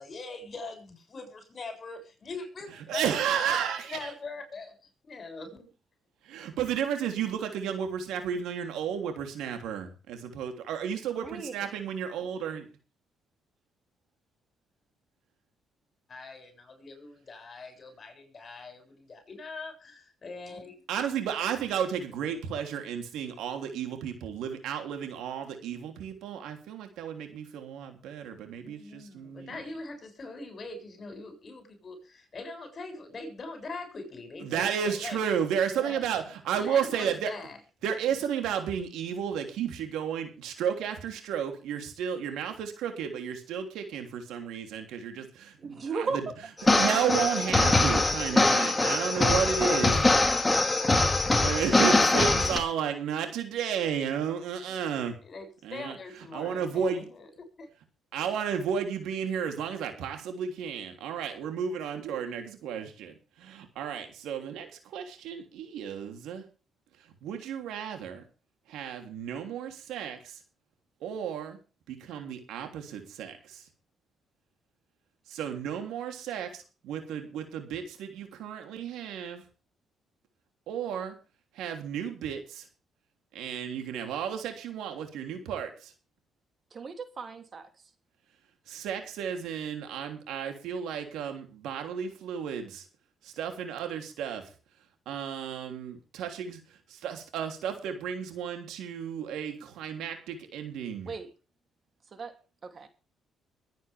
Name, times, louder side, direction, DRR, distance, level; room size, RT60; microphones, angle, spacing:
voice 1, 0.0-3.1 3.9-4.7 5.1-5.7 16.1-20.8 28.6-35.2 35.7-36.1 36.5-37.6 54.7-54.9 55.2-57.3 57.6-57.7, left 3 dB, 45° left, 7.1 m, -42 dB
voice 2, 2.9-4.1 6.3-12.7 20.9-29.6 34.4-37.3 37.8-46.2 46.7-50.3 51.3-55.2 55.6-56.0 56.3-57.0 58.1-66.4 67.2-68.2 68.7-70.4 71.0-71.6 71.9-73.6 75.3-79.4 80.7-81.1 81.5-82.6 83.3-85.9 88.7-92.8 93.2-94.5 95.0-96.6 96.9-101.1, right 8 dB, 85° right, 3.3 m, -33 dB
voice 3, 11.2-11.5 45.6-46.3 86.7-87.7 101.0-101.3 102.1-102.3 102.6-102.9, right 4 dB, 45° right, 3.0 m, -36 dB
sound 1, 46.6-52.6, left 2 dB, 15° left, 2.5 m, -23 dB
23.0 x 9.3 x 3.6 m
cardioid pair, 90°, 0 cm